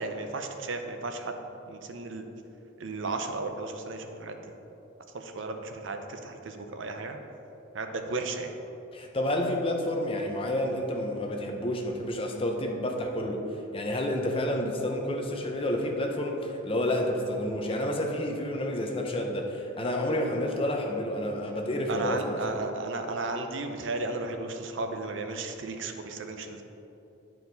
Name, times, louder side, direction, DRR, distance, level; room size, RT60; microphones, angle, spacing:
voice 1, 0.0-2.3 2.8-4.5 5.1-7.2 7.7-8.5 21.9-26.6, right 3 dB, 70° right, 5 dB, 0.6 m, -34 dB
voice 2, 8.9-13.4 13.7-22.6, left 1 dB, 30° left, 2 dB, 0.7 m, -29 dB
10.5 x 4.6 x 4.0 m, 3.0 s
head